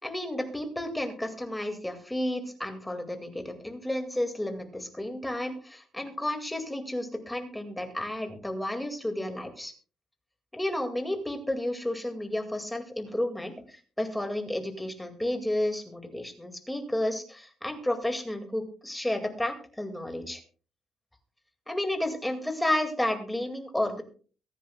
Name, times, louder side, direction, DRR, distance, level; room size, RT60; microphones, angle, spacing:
voice 1, 0.0-9.7 10.5-20.4 21.7-24.0, left 1 dB, 5° left, 5 dB, 2.0 m, -32 dB
23.0 x 10.0 x 2.2 m, 0.38 s
cardioid pair, 150°, 0 cm